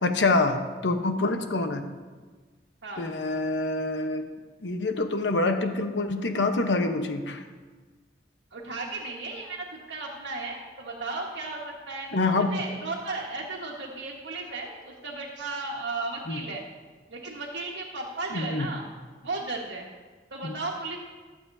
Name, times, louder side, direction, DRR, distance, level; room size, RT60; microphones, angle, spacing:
voice 1, 0.0-1.8 3.0-4.2 4.6-7.4 12.1-12.5 16.3-16.4 18.3-18.7 20.4-20.5, left 2 dB, 80° left, 6 dB, 1.0 m, -26 dB
voice 2, 2.8-3.1 8.5-12.1 12.4-16.6 17.1-18.8 19.2-19.9 20.3-21.0, right 3 dB, 90° right, -4 dB, 1.5 m, -35 dB
22.5 x 7.7 x 2.7 m, 1.4 s
head